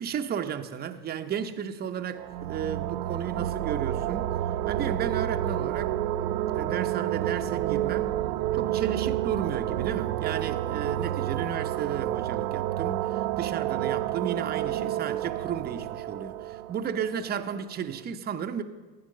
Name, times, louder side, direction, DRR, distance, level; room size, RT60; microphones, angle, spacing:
voice 1, 0.0-4.4 4.7-6.0 6.5-8.2 8.5-18.6, right 8 dB, 20° right, 0.6 m, -33 dB
sound 1, 2.1-17.7, right 13 dB, 65° right, 0.7 m, -30 dB
12.5 x 8.7 x 6.6 m
hypercardioid pair, 95°, 49 cm